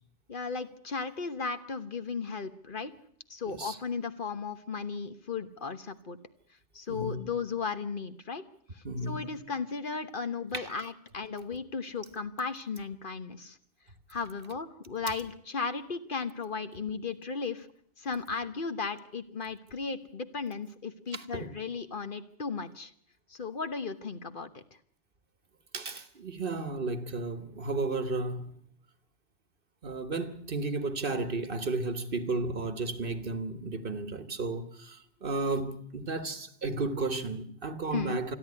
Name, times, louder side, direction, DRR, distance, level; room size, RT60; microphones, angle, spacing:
voice 1, 0.3-2.9 3.3-6.2 6.7-8.4 8.7-13.6 14.1-17.7 18.0-22.9 23.3-24.6 37.9-38.2, left 5 dB, 50° left, 1.3 m, -35 dB
voice 2, 3.5-3.8 6.9-7.3 8.8-9.3 10.5-10.7 21.1-21.5 25.7-28.5 29.8-38.4, right 3 dB, 55° right, 1.5 m, -33 dB
27.0 x 11.0 x 9.6 m
omnidirectional pair, 1.1 m